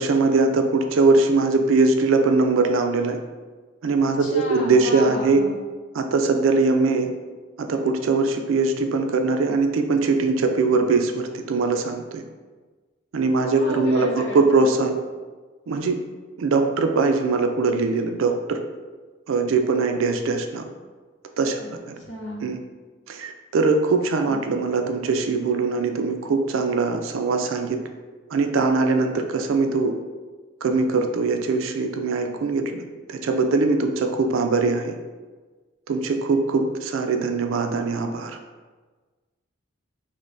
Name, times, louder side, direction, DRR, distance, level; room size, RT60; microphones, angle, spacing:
voice 1, 0.0-3.2 3.8-5.5 5.9-7.1 7.6-12.2 13.1-15.0 15.7-16.0 16.4-18.6 19.3-20.7 21.4-21.6 21.9-22.0 22.4-22.6 23.1-27.8 28.3-29.9 30.6-32.8 33.1-34.9 35.9-38.4, right 3 dB, 80° right, 6 dB, 0.4 m, -21 dB
voice 2, 4.0-5.5 13.5-14.7 21.6-21.7 22.0-22.5 24.3-24.6, left 1 dB, 65° left, -2 dB, 0.7 m, -34 dB
5.0 x 2.1 x 2.5 m, 1.3 s
head